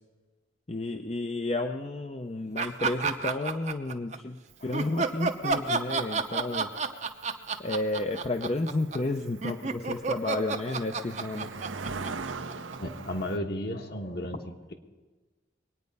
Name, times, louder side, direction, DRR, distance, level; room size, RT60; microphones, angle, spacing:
voice 1, 0.7-4.4 4.6-6.7 7.6-11.5, left 2 dB, 30° left, 6 dB, 0.6 m, -31 dB
sound 1, 2.6-4.2 4.7-13.0, right 4 dB, 35° right, 0.7 m, -30 dB
Cricket, 4.5-13.4, right 4 dB, 85° right, 0.9 m, -42 dB
voice 2, 4.6-5.0 6.9-7.1 12.7-14.7, left 1 dB, 55° left, 5 dB, 1.4 m, -35 dB
22.5 x 9.5 x 5.4 m, 1.3 s
head